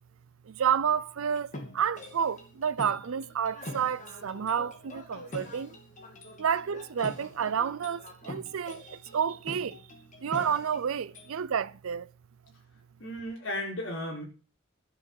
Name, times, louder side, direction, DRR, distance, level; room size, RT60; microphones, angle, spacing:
voice 1, 0.4-5.8 6.4-9.8 10.2-12.1, right 7 dB, 80° right, 0.5 m, -30 dB
sound 1, 1.3-11.3, left 1 dB, 35° left, 2.5 m, -45 dB
voice 2, 13.0-14.2, left 1 dB, 70° left, 4.3 m, -34 dB
12.0 x 6.9 x 6.6 m
head